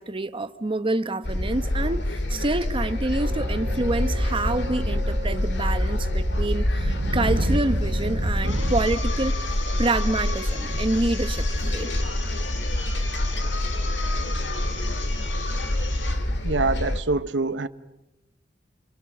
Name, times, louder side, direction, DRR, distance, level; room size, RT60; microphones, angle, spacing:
voice 1, 0.0-11.9, right 2 dB, 30° right, 0.9 m, -27 dB
sound 1, 1.2-17.0, left 1 dB, 70° left, 2.1 m, -26 dB
sound 2, 2.8-8.8, equal, 55° right, 2.3 m, -29 dB
sound 3, 8.4-16.3, left 4 dB, 85° left, 4.5 m, -36 dB
voice 2, 16.4-17.7, right 3 dB, 75° right, 1.0 m, -25 dB
27.5 x 25.5 x 7.4 m
head